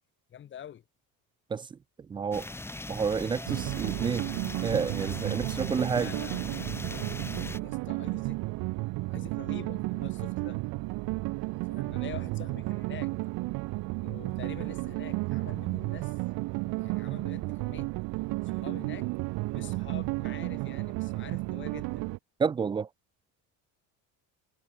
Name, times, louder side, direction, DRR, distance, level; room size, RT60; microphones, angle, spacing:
voice 1, 0.3-0.8 5.9-8.4 9.0-10.6 11.7-13.1 14.0-16.2 16.8-17.9 18.4-19.1 19.5-22.0, left 10 dB, 35° left, 6.0 m, -46 dB
voice 2, 2.1-2.5 2.9-4.3 4.6-6.1 22.4-22.9, right 6 dB, 15° right, 0.3 m, -29 dB
sound 1, 2.3-7.6, left 2 dB, 5° left, 2.8 m, -40 dB
sound 2, 3.5-22.2, right 23 dB, 80° right, 1.8 m, -33 dB
cardioid pair, 180°, 35 cm